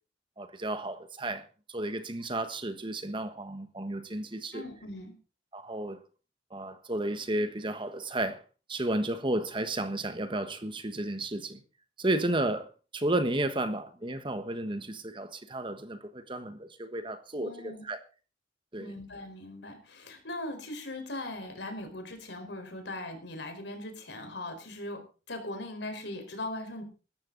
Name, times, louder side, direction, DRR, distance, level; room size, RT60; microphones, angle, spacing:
voice 1, 0.4-1.4 1.7-4.6 5.5-6.0 6.5-8.4 8.7-11.6 12.0-18.0 18.7-18.9, right 1 dB, 25° right, 1.3 m, -32 dB
voice 2, 4.5-5.1 17.4-17.9 18.8-25.0 25.3-26.8, left 1 dB, 75° left, 4.6 m, -39 dB
16.5 x 13.5 x 4.0 m
head